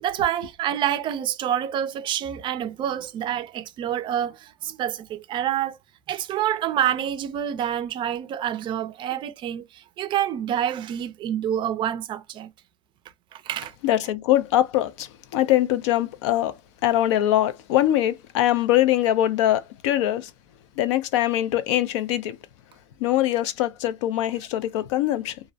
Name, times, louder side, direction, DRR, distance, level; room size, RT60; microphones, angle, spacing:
voice 1, 0.0-5.8 6.1-12.5 13.3-13.7, right 10 dB, 35° right, 0.4 m, -27 dB
voice 2, 13.8-16.5 16.8-20.3 20.8-22.4 23.0-25.4, left 13 dB, 80° left, 0.5 m, -22 dB
2.5 x 2.0 x 2.5 m
supercardioid pair, 135°, 15 cm